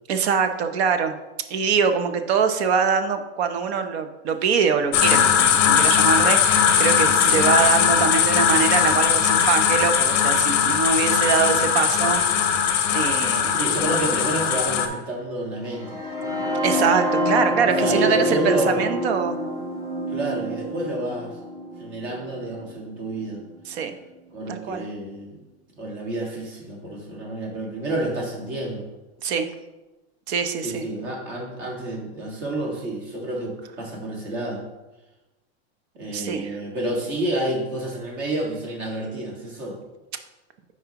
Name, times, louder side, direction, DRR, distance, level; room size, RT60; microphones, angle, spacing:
voice 1, 0.1-1.2 1.5-12.2 12.9-13.5 16.6-19.4 23.7-23.9 24.5-24.8 29.2-29.5 30.3-30.8 36.1-36.6, right 6 dB, 65° right, 8 dB, 0.8 m, -23 dB
sound 1, 4.9-14.9, left 8 dB, 35° left, 0.6 m, -19 dB
voice 2, 13.5-16.0 17.8-18.8 20.1-21.4 21.8-23.4 24.3-25.4 25.8-28.9 30.6-34.6 36.0-39.8, right 1 dB, 40° right, -2 dB, 1.8 m, -29 dB
sound 2, 15.7-23.6, left 1 dB, 10° right, 0.5 m, -27 dB
9.3 x 4.7 x 2.9 m, 1.1 s
supercardioid pair, 175°, 34 cm